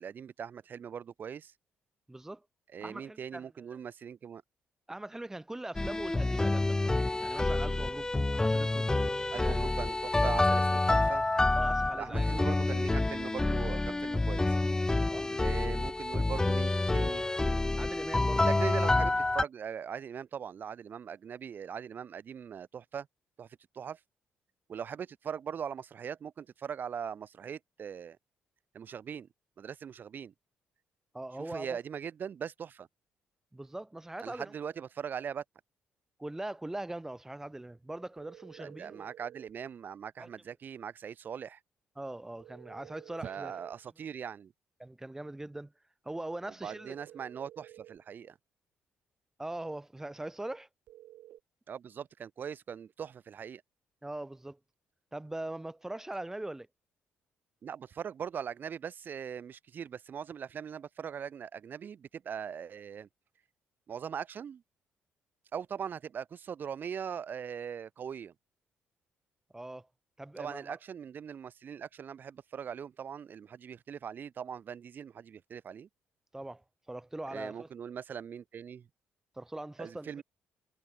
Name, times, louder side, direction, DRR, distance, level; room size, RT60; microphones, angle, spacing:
voice 1, 0.0-1.5 2.7-4.4 9.3-11.3 11.9-14.6 15.4-17.3 18.4-23.1 23.4-23.5 23.7-24.0 24.7-28.2 28.7-29.3 29.6-30.3 31.4-32.9 34.2-35.4 38.6-41.6 43.2-44.5 46.6-48.3 51.7-53.6 57.6-63.1 63.9-64.6 65.5-68.3 70.4-75.9 77.3-78.9 79.8-80.2, right 7 dB, 50° right, 5.8 m, -40 dB
voice 2, 2.1-2.4 2.8-3.8 4.9-8.9 9.4-9.8 11.5-12.3 15.1-15.5 17.8-18.5 31.1-31.8 33.5-34.5 36.2-39.1 40.2-40.3 42.0-43.7 44.8-45.7 46.0-47.0 49.4-50.7 54.0-54.6 55.1-56.7 69.5-69.9 70.2-70.8 76.3-77.7 79.4-80.1, right 1 dB, 10° right, 4.6 m, -41 dB
sound 1, 5.7-19.4, left 2 dB, 15° left, 3.1 m, -28 dB
sound 2, 38.2-39.6 42.4-43.8 46.6-48.0 50.9-51.4, right 13 dB, 80° right, 7.6 m, -52 dB
cardioid pair, 95°, 4 cm